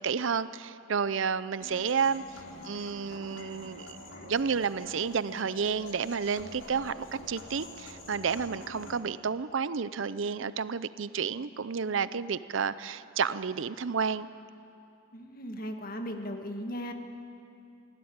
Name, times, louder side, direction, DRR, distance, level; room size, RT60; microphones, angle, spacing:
voice 1, 0.0-2.2 2.6-14.3, right 6 dB, 65° right, 15 dB, 0.6 m, -31 dB
sound 1, 1.6-9.0, left 1 dB, 70° left, 2.8 m, -47 dB
voice 2, 15.1-16.9, equal, 45° left, 5 dB, 1.7 m, -37 dB
23.5 x 16.0 x 8.8 m, 2.7 s
head